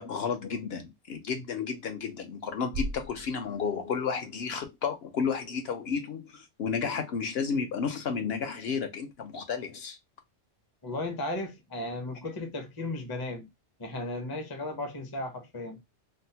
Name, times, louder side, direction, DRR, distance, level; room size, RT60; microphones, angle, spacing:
voice 1, 0.0-10.0, left 6 dB, 65° left, 0.8 m, -32 dB
sound 1, 2.7-4.8, right 1 dB, 50° right, 0.4 m, -39 dB
voice 2, 10.8-13.5 13.8-15.8, left 2 dB, 25° left, 0.5 m, -35 dB
3.5 x 2.0 x 2.7 m
omnidirectional pair, 1.2 m